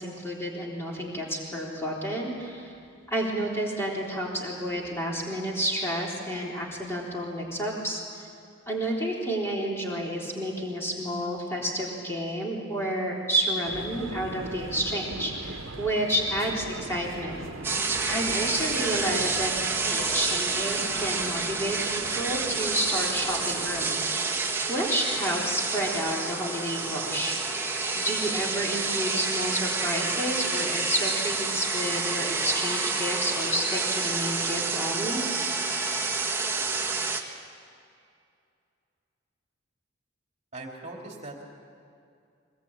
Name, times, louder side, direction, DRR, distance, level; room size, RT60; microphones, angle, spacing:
voice 1, 0.0-2.7 3.1-8.3 8.7-17.4 18.1-19.5 19.8-24.3 24.7-35.3, right 1 dB, 10° left, -3 dB, 3.7 m, -30 dB
sound 1, 13.7-24.1, right 3 dB, 75° right, 1.1 m, -40 dB
sound 2, 17.6-37.2, right 4 dB, 10° right, 1.5 m, -29 dB
voice 2, 40.5-41.4, right 2 dB, 35° right, 0 dB, 2.9 m, -40 dB
24.0 x 19.5 x 8.9 m, 2.4 s
head